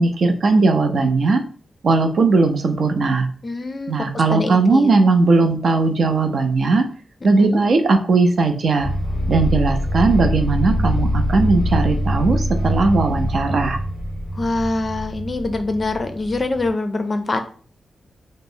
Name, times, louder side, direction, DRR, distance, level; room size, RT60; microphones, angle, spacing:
voice 1, 0.0-1.4 1.8-3.3 3.9-6.9 7.2-8.9 9.3-13.8, right 3 dB, 60° right, 6 dB, 0.5 m, -18 dB
voice 2, 3.4-3.9 4.3-5.0 7.4-7.6 14.3-17.4, left 2 dB, 35° left, 8 dB, 0.4 m, -24 dB
sound 1, 8.8-16.7, equal, ahead, 0.7 m, -23 dB
2.9 x 2.0 x 3.7 m, 0.43 s
wide cardioid pair, 110°, 0 cm